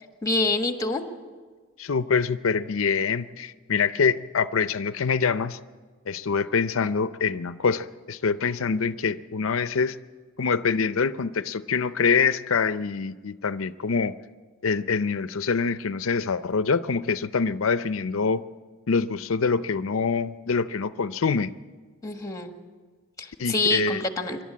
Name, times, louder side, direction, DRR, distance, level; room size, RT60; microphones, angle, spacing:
voice 1, 0.2-1.0 22.0-22.5 23.2-24.4, left 2 dB, 15° left, 5 dB, 1.6 m, -26 dB
voice 2, 1.8-5.6 6.1-10.0 10.4-14.1 14.6-18.4 18.9-21.5 23.4-24.0, left 5 dB, 70° left, 13 dB, 0.6 m, -25 dB
26.0 x 12.0 x 8.5 m, 1.5 s
head